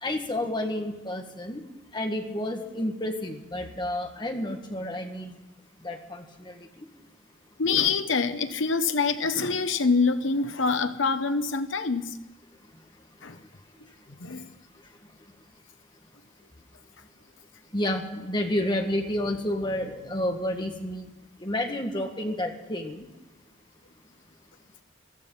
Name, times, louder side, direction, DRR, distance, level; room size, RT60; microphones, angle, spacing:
voice 1, 0.0-1.6 1.9-5.3 5.8-6.9 17.7-21.1 21.4-23.1, left 1 dB, 25° left, 4 dB, 1.7 m, -30 dB
voice 2, 7.6-12.2 13.2-13.4 14.2-14.5, left 4 dB, 75° left, 10 dB, 1.0 m, -25 dB
15.0 x 14.0 x 5.6 m, 1.1 s
head